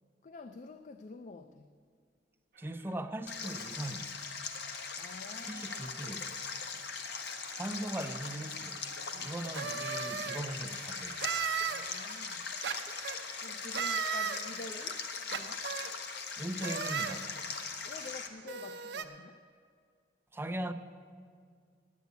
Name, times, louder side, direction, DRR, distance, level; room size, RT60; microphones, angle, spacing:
voice 1, 0.2-1.7 5.0-5.9 9.1-9.4 11.7-12.5 13.4-15.0 15.3-15.7 17.9-19.4, left 3 dB, 45° left, 9 dB, 0.4 m, -48 dB
sound 1, 2.5-3.4 3.9-15.0, right 5 dB, 55° right, 1.0 m, -55 dB
voice 2, 2.6-4.1 5.5-6.3 7.6-8.8 9.2-11.2 16.4-17.3 20.3-20.7, right 1 dB, 15° right, 7 dB, 0.5 m, -39 dB
Stream, 3.3-18.3, left 5 dB, 65° left, 0.9 m, -40 dB
sound 2, 9.5-10.4 11.2-11.8 12.6-13.2 13.7-14.4 15.3-15.9 16.6-17.2 18.0-18.1 18.5-19.0, right 7 dB, 75° right, 0.7 m, -35 dB
9.2 x 8.2 x 9.3 m, 2.1 s
head